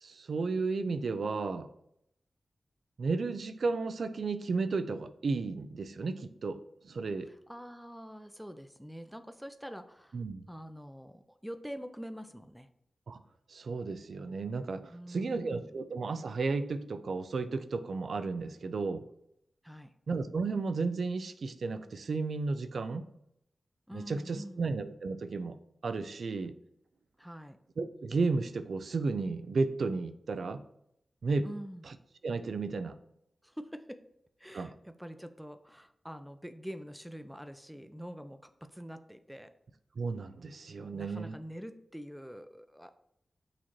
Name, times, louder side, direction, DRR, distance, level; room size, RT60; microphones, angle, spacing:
voice 1, 0.0-1.7 3.0-6.6 6.8-7.3 10.1-10.5 13.1-13.2 13.5-19.1 20.1-23.0 23.9-25.6 25.8-26.5 27.8-30.6 31.2-31.5 32.2-33.0 34.5-34.7 40.0-41.3, right 4 dB, 75° right, 11 dB, 0.3 m, -33 dB
voice 2, 7.3-10.2 10.5-12.7 14.9-15.8 19.6-19.9 23.9-24.7 27.2-27.6 31.4-31.9 33.4-34.1 34.4-39.5 40.8-42.9, equal, ahead, 9 dB, 0.4 m, -45 dB
6.3 x 2.8 x 3.0 m, 0.76 s
cardioid pair, 40°, 0 cm